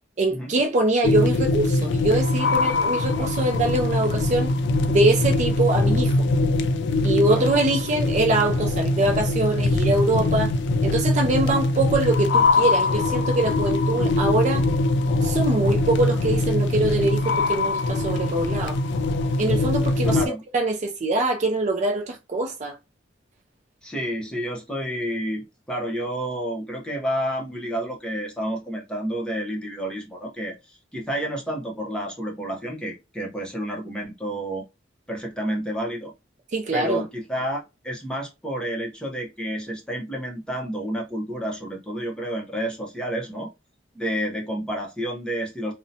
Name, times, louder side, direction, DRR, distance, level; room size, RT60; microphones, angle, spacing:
voice 1, 0.2-4.5 4.9-6.3 7.0-10.5 10.8-14.7 15.2-18.8 19.4-22.7 36.5-37.0, right 2 dB, 40° right, 0.4 m, -23 dB
sound 1, 1.0-20.3, left 2 dB, 65° left, 0.3 m, -22 dB
voice 2, 23.8-34.6 35.1-36.1 36.7-43.5 43.9-45.7, right 1 dB, 5° left, 0.7 m, -30 dB
2.7 x 2.1 x 2.7 m
head